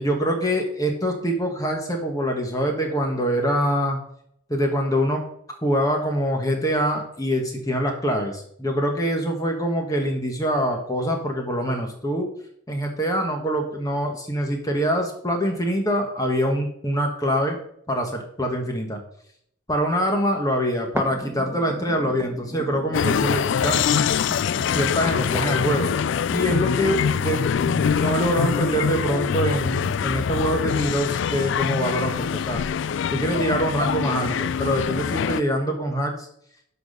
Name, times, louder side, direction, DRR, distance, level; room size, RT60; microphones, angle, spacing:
voice 1, 0.0-4.0 4.5-5.2 5.6-12.3 12.7-17.6 17.9-19.0 19.7-23.8 24.7-25.9 26.3-32.6 33.1-36.3, equal, 15° left, 2 dB, 1.3 m, -24 dB
sound 1, 21.0-30.9 31.5-31.6, right 1 dB, 15° right, 0.6 m, -38 dB
sound 2, 22.9-35.4, left 7 dB, 60° left, 0.3 m, -24 dB
11.5 x 4.1 x 6.5 m, 0.69 s
head